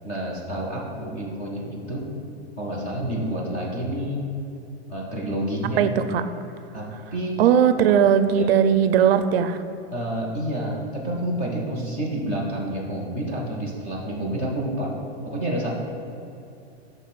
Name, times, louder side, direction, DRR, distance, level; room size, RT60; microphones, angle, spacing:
voice 1, 0.0-2.1 2.6-4.2 4.9-5.8 6.7-7.4 8.4-8.5 9.9-14.9 15.2-15.8, right 1 dB, 15° left, -4 dB, 0.3 m, -29 dB
voice 2, 5.8-6.2 7.4-9.6, right 8 dB, 65° right, 10 dB, 0.5 m, -18 dB
6.1 x 3.3 x 5.7 m, 2.8 s
supercardioid pair, 175°, 33 cm